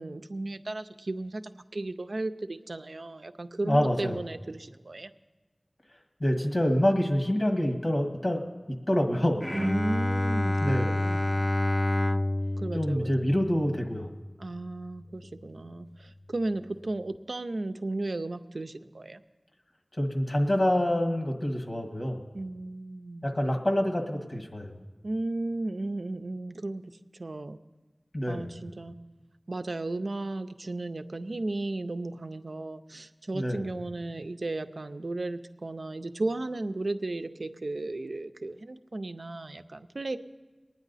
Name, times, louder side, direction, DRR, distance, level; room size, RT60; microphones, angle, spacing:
voice 1, 0.0-1.4 1.7-5.1 9.5-11.3 12.6-13.3 14.4-19.2 22.3-23.3 25.0-26.9 27.2-27.6 28.3-29.0 29.5-40.2, right 2 dB, 90° right, 8 dB, 0.5 m, -35 dB
voice 2, 3.6-4.2 6.2-8.4 8.9-9.4 10.6-11.1 12.7-14.1 20.0-22.2 23.2-24.7 28.1-28.5 33.3-33.6, equal, 70° left, 3 dB, 1.6 m, -26 dB
Bowed string instrument, 9.4-14.7, left 1 dB, 25° left, 0.4 m, -29 dB
22.0 x 9.7 x 4.1 m, 1.2 s
wide cardioid pair, 45°, 0 cm